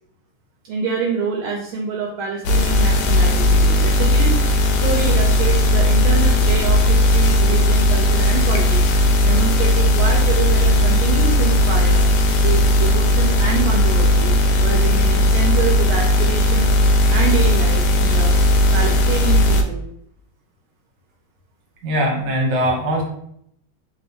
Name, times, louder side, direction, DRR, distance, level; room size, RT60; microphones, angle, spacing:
voice 1, 0.7-4.4 4.8-8.9 9.2-12.0 12.4-14.3 14.6-16.7 17.1-18.3 18.7-19.8, right 5 dB, 75° right, 0 dB, 1.3 m, -26 dB
sound 1, 2.4-19.6, left 1 dB, 90° left, 1.5 m, -16 dB
voice 2, 21.8-23.0, equal, 60° right, 0 dB, 1.5 m, -20 dB
3.6 x 2.5 x 3.4 m, 0.71 s
omnidirectional pair, 2.4 m